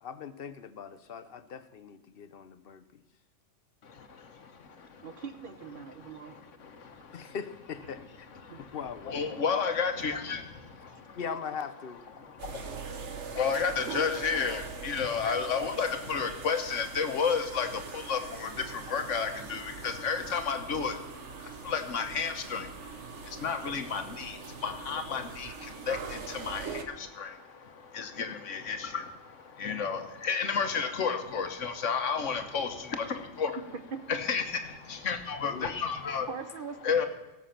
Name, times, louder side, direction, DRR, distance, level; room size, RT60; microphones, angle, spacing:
voice 1, 0.0-3.0 7.1-8.3 8.7-9.6 9.9-10.4 11.2-12.0 35.5-35.7, left 6 dB, 55° left, 13 dB, 0.8 m, -41 dB
voice 2, 3.8-5.2 6.0-7.4 8.3-8.8 9.0-11.2 12.2-33.6 34.1-36.3 36.8-37.1, left 6 dB, 75° left, 7 dB, 1.4 m, -32 dB
voice 3, 5.0-6.3 8.5-8.6 15.3-15.4 33.9-34.0 36.3-36.8, right 6 dB, 50° right, 10 dB, 0.9 m, -41 dB
sound 1, 12.4-26.8, right 5 dB, 65° right, 1.3 m, -42 dB
17.5 x 7.2 x 5.8 m, 1.0 s
omnidirectional pair, 1.3 m